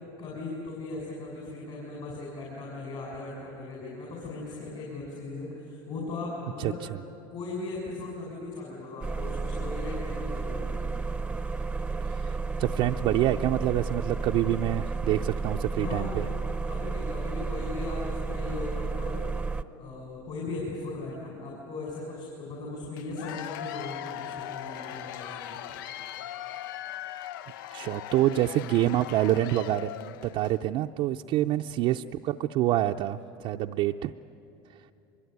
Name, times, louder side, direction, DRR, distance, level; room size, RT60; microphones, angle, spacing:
voice 1, 0.2-6.8 7.3-10.9 15.8-16.3 16.6-19.2 19.8-25.9 31.3-31.6, left 3 dB, 50° left, -3 dB, 6.5 m, -38 dB
sound 1, 9.0-19.6, right 4 dB, 10° right, 0.7 m, -32 dB
voice 2, 12.2-16.2 27.7-34.1, right 13 dB, 55° right, 3 dB, 0.5 m, -27 dB
Cheering / Applause / Crowd, 23.0-30.6, left 12 dB, 80° left, 0.5 m, -39 dB
23.5 x 21.5 x 9.5 m, 2.8 s
supercardioid pair, 110°, 11 cm